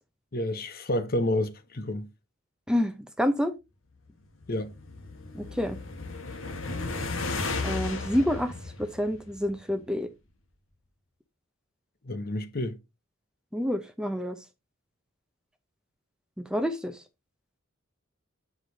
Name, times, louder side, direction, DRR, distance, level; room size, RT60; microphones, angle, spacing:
voice 1, 0.3-2.1 4.5-4.7 12.0-12.8, left 1 dB, 50° left, 1.0 m, -29 dB
voice 2, 2.7-3.5 5.3-5.8 7.6-8.5 8.8-10.1 13.5-14.4 16.4-16.9, equal, 5° right, 0.7 m, -28 dB
sound 1, 4.2-9.7, left 3 dB, 80° left, 1.5 m, -35 dB
8.1 x 5.0 x 4.0 m
head